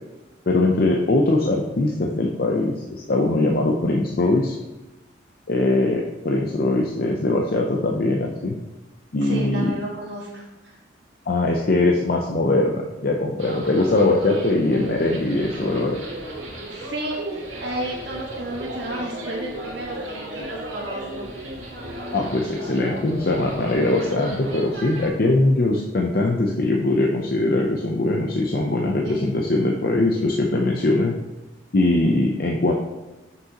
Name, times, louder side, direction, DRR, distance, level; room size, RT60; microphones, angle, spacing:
voice 1, 0.5-4.6 5.5-8.6 9.1-9.7 11.3-16.0 22.1-31.2 31.7-32.7, left 2 dB, 50° left, 1 dB, 0.6 m, -21 dB
voice 2, 9.2-10.7 16.7-21.3 29.0-29.3, right 1 dB, 65° right, -4 dB, 1.4 m, -32 dB
sound 1, 13.4-25.1, right 1 dB, 85° right, 2.4 m, -35 dB
7.4 x 6.4 x 2.9 m, 1.1 s
head